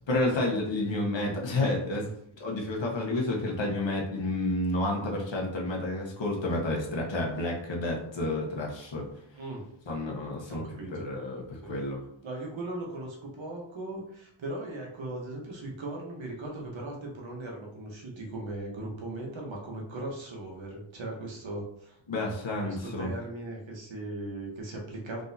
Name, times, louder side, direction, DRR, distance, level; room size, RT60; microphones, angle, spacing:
voice 1, 0.1-2.1 2.4-9.1 9.9-10.6 10.9-12.0 22.1-23.1, left 2 dB, 65° left, -1 dB, 1.2 m, -30 dB
voice 2, 9.4-9.7 10.5-11.1 11.6-11.8 12.2-22.0 22.6-25.2, right 2 dB, 70° right, -1 dB, 1.2 m, -38 dB
3.9 x 3.6 x 2.7 m, 0.73 s
wide cardioid pair, 95°, 48 cm